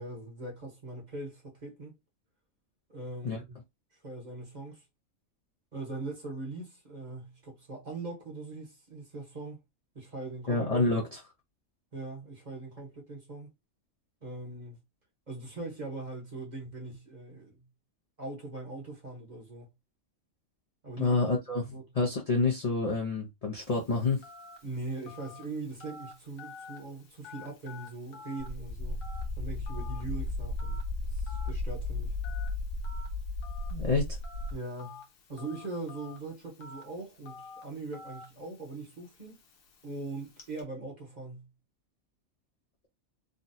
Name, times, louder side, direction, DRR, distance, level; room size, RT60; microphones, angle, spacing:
voice 1, 0.0-1.9 2.9-3.6 4.0-4.8 5.7-9.6 9.9-10.8 11.9-13.5 14.2-14.8 15.3-17.7 18.2-19.7 20.8-21.2 21.7-21.8 24.6-29.0 29.4-30.8 31.1-32.1 34.5-35.0 35.3-39.4 39.8-41.5, right 2 dB, 35° right, 1.1 m, -41 dB
voice 2, 10.5-11.2 21.0-24.2 33.7-34.1, left 3 dB, 40° left, 0.6 m, -28 dB
Telephone, 23.6-40.6, left 4 dB, 75° left, 1.2 m, -51 dB
sound 1, 28.4-34.5, left 2 dB, 75° right, 1.2 m, -34 dB
3.7 x 2.2 x 2.6 m
omnidirectional pair, 1.4 m